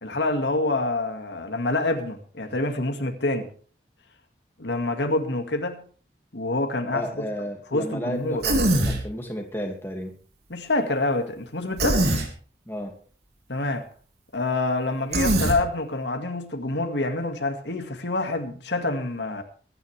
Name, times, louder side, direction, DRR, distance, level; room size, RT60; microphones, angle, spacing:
voice 1, 0.0-3.5 4.6-5.8 6.3-7.0 7.7-8.4 10.5-12.1 13.5-13.9 14.3-19.4, left 2 dB, 85° left, 2.1 m, -27 dB
voice 2, 6.9-10.2 12.7-12.9, equal, 15° left, 2.3 m, -33 dB
Human voice, 8.4-9.0 11.8-12.3 15.1-15.6, right 1 dB, 75° right, 3.1 m, -21 dB
22.5 x 10.5 x 3.4 m
head